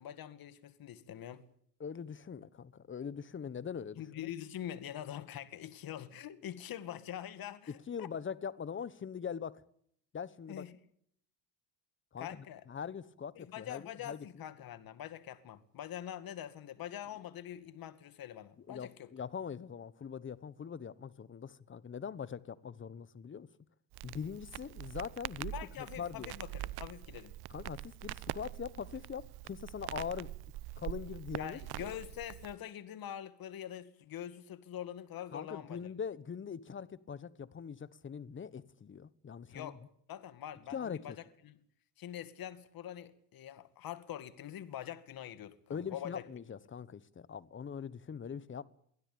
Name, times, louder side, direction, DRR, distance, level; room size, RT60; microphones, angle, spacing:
voice 1, 0.0-1.5 4.0-8.1 10.5-10.8 12.2-12.6 13.4-19.1 25.5-27.4 31.4-35.9 39.5-39.8 40.1-41.6 42.0-46.2, left 11 dB, 45° left, 2.1 m, -44 dB
voice 2, 1.8-4.3 7.7-9.6 10.1-10.6 12.1-14.4 18.7-23.5 24.0-26.3 27.5-30.3 30.8-31.9 35.3-39.7 40.7-41.0 45.7-48.6, left 7 dB, 25° left, 1.2 m, -42 dB
Crackle, 23.9-32.6, right 16 dB, 50° right, 0.9 m, -44 dB
23.5 x 16.5 x 8.7 m
supercardioid pair, 100°, 48 cm